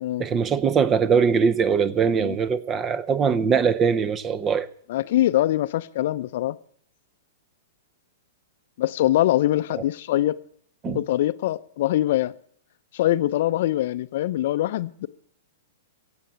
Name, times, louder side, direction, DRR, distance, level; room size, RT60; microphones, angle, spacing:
voice 1, 0.2-4.7 10.8-11.0, right 6 dB, 25° right, 0.8 m, -21 dB
voice 2, 4.9-6.6 8.8-10.4 10.8-12.3 12.9-15.1, left 14 dB, 60° left, 0.6 m, -23 dB
15.5 x 8.0 x 8.4 m
hypercardioid pair, 115°, 0 cm